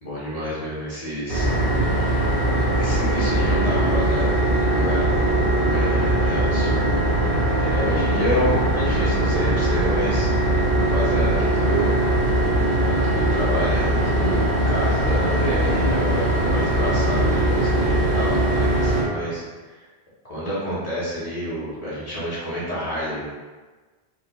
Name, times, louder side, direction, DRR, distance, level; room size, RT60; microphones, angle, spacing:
voice 1, 0.0-1.5 2.7-7.2 7.6-10.3 10.9-11.9 12.9-19.8 20.2-23.2, equal, 40° left, -9 dB, 1.1 m, -29 dB
sound 1, 1.3-19.0, right 1 dB, 20° right, 1.0 m, -21 dB
4.7 x 2.3 x 2.2 m, 1.3 s
omnidirectional pair, 1.0 m